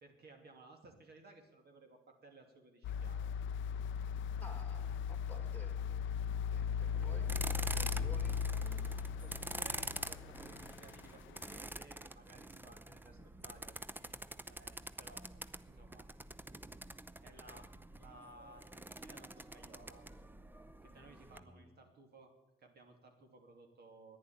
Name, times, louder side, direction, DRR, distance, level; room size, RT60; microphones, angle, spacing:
voice 1, 0.0-3.3 9.2-14.1 14.5-15.3 15.7-16.1 17.2-17.7 18.0-20.0 20.8-22.3 22.6-24.2, right 2 dB, 55° right, 3 dB, 2.9 m, -58 dB
sound 1, 2.8-11.1 11.5-11.6, left 7 dB, 75° left, 0.5 m, -38 dB
voice 2, 4.4-6.2 6.5-8.4 21.3-21.8, left 1 dB, 10° left, 8 dB, 1.9 m, -55 dB
sound 2, 6.9-21.4, right 2 dB, 10° right, 0.6 m, -46 dB
10.5 x 9.8 x 9.4 m, 0.99 s
cardioid pair, 90°, 20 cm